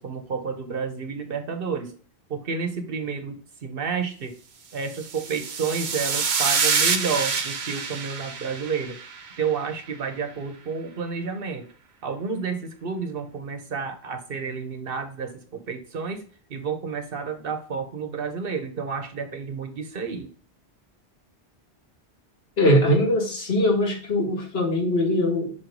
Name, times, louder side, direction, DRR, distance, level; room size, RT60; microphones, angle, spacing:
voice 1, 0.0-1.9 2.3-4.3 4.7-9.0 9.4-11.7 12.0-16.2 16.5-20.3, right 5 dB, 60° right, 7 dB, 1.1 m, -30 dB
sound 1, 4.9-9.4, right 5 dB, 85° right, 1.1 m, -26 dB
voice 2, 22.6-25.5, left 1 dB, 70° left, 2 dB, 1.7 m, -21 dB
5.9 x 3.1 x 5.1 m, 0.41 s
omnidirectional pair, 1.1 m